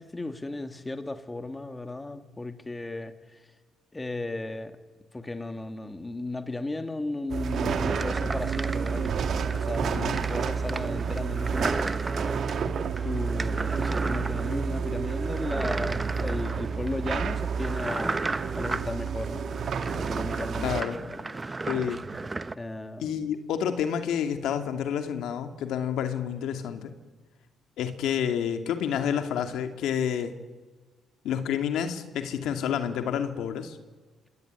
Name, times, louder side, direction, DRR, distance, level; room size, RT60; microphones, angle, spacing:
voice 1, 0.0-3.4 3.9-4.8 5.1-11.8 13.0-18.2 18.6-19.4 20.0-21.6 22.6-23.4, left 2 dB, 15° left, 2.4 m, -35 dB
sound 1, 7.3-20.8, right 6 dB, 55° right, 2.3 m, -30 dB
sound 2, 7.7-22.5, right 3 dB, 20° right, 1.0 m, -35 dB
voice 2, 20.6-21.0 21.7-22.0 23.0-26.9 27.8-30.3 31.2-33.8, left 8 dB, 80° left, 2.5 m, -29 dB
27.0 x 21.0 x 9.6 m
cardioid pair, 100°, 0 cm